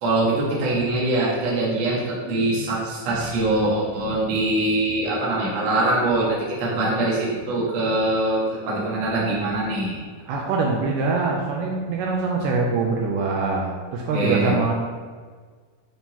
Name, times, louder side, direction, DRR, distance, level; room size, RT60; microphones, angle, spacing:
voice 1, 0.0-10.0 14.1-14.6, right 2 dB, 55° right, -6 dB, 1.4 m, -23 dB
voice 2, 10.3-14.7, right 3 dB, 80° right, -1 dB, 2.1 m, -23 dB
9.4 x 3.7 x 2.9 m, 1.5 s
omnidirectional pair, 4.1 m